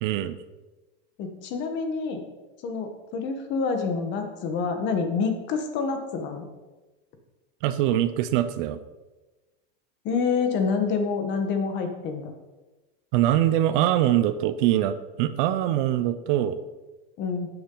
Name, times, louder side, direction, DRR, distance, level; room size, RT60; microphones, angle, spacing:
voice 1, 0.0-0.4 7.6-8.8 13.1-16.6, right 12 dB, 55° right, 12 dB, 0.5 m, -23 dB
voice 2, 1.2-2.3 2.6-6.4 10.0-12.3 17.2-17.5, left 5 dB, 35° left, 6 dB, 1.1 m, -27 dB
11.0 x 7.0 x 3.8 m, 1.1 s
cardioid pair, 175°, 32 cm